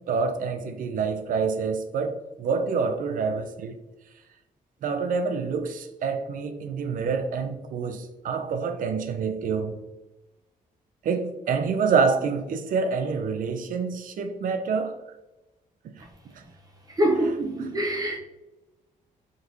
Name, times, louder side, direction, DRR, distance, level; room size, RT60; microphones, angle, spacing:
voice 1, 0.1-3.7 4.8-9.8 11.0-14.9 17.6-17.7, right 5 dB, 65° right, 0.5 m, -27 dB
voice 2, 17.0-18.2, right 1 dB, 25° right, 0.6 m, -24 dB
5.1 x 3.0 x 2.6 m
cardioid pair, 105°, 15 cm